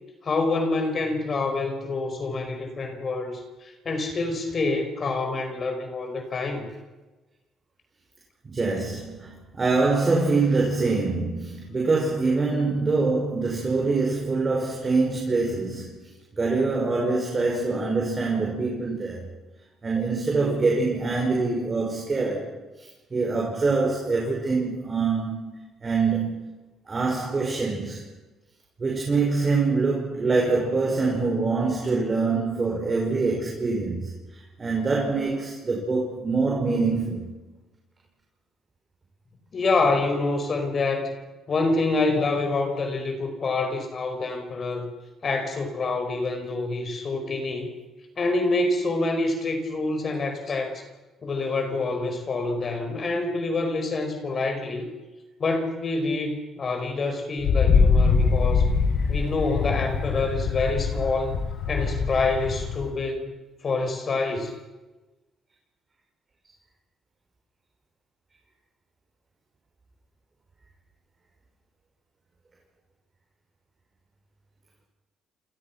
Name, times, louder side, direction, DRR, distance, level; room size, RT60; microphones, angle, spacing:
voice 1, 0.2-6.7 39.5-41.1 41.5-44.9 45.2-47.7 48.2-50.8 51.2-54.9 55.4-58.7 59.1-61.4 61.7-63.3 63.6-64.5, left 3 dB, 40° left, 5.0 m, -26 dB
voice 2, 8.4-19.2 19.8-22.5 22.8-26.6 26.9-28.0 28.8-37.3, right 3 dB, 30° right, 5.8 m, -25 dB
Wind, 57.4-62.9, left 5 dB, 70° left, 7.5 m, -23 dB
29.0 x 27.5 x 6.0 m
cardioid pair, 115°, 0 cm